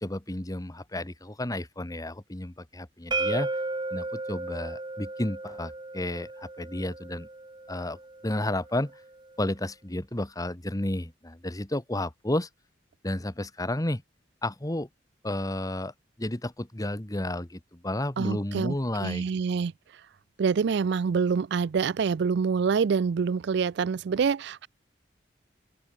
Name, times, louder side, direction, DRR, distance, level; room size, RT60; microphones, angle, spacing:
voice 1, 0.0-3.5 3.9-7.3 7.7-8.0 8.2-8.9 9.4-12.5 13.0-14.0 14.4-14.9 15.2-15.9 16.2-19.3, left 1 dB, 20° left, 1.5 m, -32 dB
sound 1, 3.1-8.9, right 2 dB, 25° right, 2.4 m, -34 dB
voice 2, 18.2-20.0 20.4-24.7, right 5 dB, 65° right, 0.4 m, -26 dB
open air
head